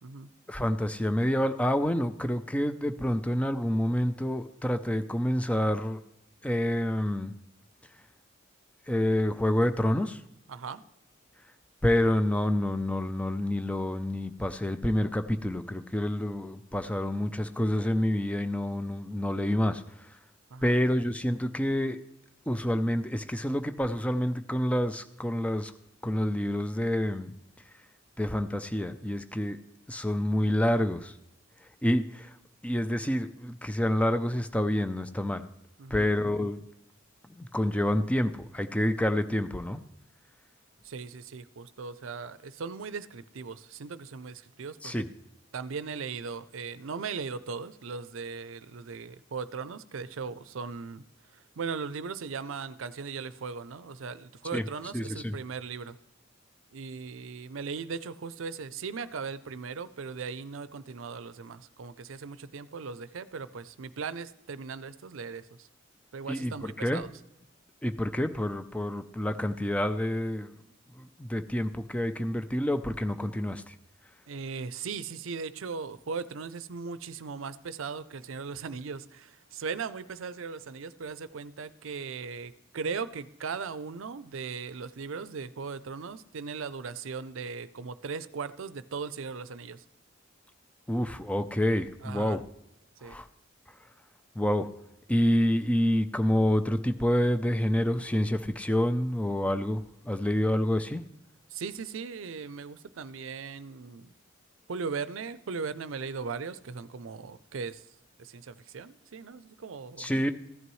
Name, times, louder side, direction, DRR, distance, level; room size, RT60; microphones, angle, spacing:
voice 1, 0.5-6.0 6.4-7.3 8.9-10.2 11.8-20.2 20.6-22.0 22.5-25.7 26.0-27.3 28.2-29.6 29.9-31.1 31.8-32.4 32.6-35.5 35.9-36.6 37.3-39.8 44.8-45.1 54.5-54.6 54.9-55.4 66.3-67.0 67.8-70.6 71.0-73.8 90.9-92.4 93.0-93.3 94.3-94.7 95.1-101.0 110.0-110.3, left 1 dB, 5° left, 9 dB, 0.4 m, -28 dB
voice 2, 10.5-10.8 20.5-20.7 35.8-36.1 40.8-45.0 45.5-51.0 51.3-56.0 56.7-65.7 66.1-67.1 74.3-89.8 92.0-92.4 93.0-93.2 101.5-104.1 104.7-107.9 108.2-110.3, right 5 dB, 80° right, 15 dB, 0.5 m, -38 dB
15.0 x 11.0 x 3.1 m, 0.83 s
head